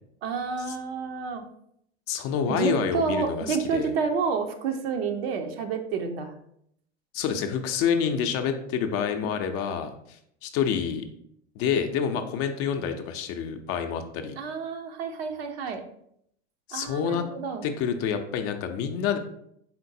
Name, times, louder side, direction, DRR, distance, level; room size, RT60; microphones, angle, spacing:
voice 1, 0.2-1.4 2.5-6.3 14.4-15.8 16.7-17.6, right 5 dB, 60° right, 6 dB, 0.8 m, -29 dB
voice 2, 2.1-3.9 7.1-11.0 11.6-14.4 16.7-17.2 17.6-19.2, left 7 dB, 40° left, 6 dB, 0.5 m, -28 dB
4.3 x 3.7 x 2.7 m, 0.71 s
hypercardioid pair, 95°, 34 cm